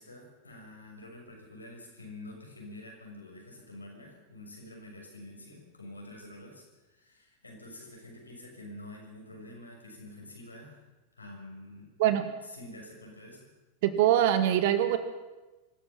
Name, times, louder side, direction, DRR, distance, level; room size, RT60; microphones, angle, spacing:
voice 1, 0.0-10.8 11.1-11.9 12.4-13.5, left 1 dB, 80° left, 0 dB, 6.6 m, -47 dB
voice 2, 13.8-15.0, right 11 dB, 50° right, 10 dB, 2.0 m, -23 dB
25.0 x 14.5 x 7.4 m, 1.1 s
figure-of-eight pair, 90°, 0 cm